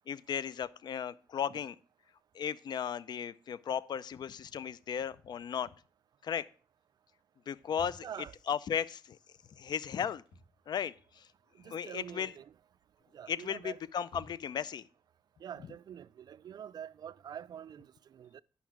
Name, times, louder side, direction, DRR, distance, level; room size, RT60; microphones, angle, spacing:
voice 1, 0.1-1.8 2.3-5.7 6.2-6.4 7.5-8.1 8.5-9.2 9.6-10.2 10.7-11.3 11.6-12.3 13.3-14.8, left 8 dB, 60° left, 0.5 m, -35 dB
sound 1, 7.7-8.3 10.1-10.6 10.9-11.8 12.1-12.5 13.2-14.7, left 1 dB, 85° left, 2.3 m, -55 dB
voice 2, 11.5-12.5 13.1-13.8 15.4-18.4, right 9 dB, 55° right, 0.4 m, -46 dB
9.4 x 5.6 x 6.0 m
cardioid pair, 90°, 8 cm